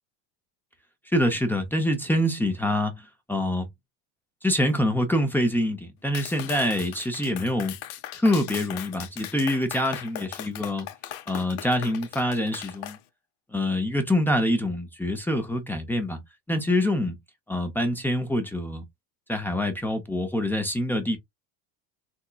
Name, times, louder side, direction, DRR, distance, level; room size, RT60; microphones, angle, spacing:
voice 1, 1.1-3.0 3.3-3.7 4.4-7.7 8.1-10.9 11.3-13.0 13.5-16.2 16.5-17.1 17.5-18.8 19.3-21.2, left 1 dB, 5° left, 0.6 m, -25 dB
Clapping, 6.1-13.0, left 13 dB, 60° left, 0.8 m, -38 dB
3.6 x 2.9 x 2.3 m
supercardioid pair, 125°, 47 cm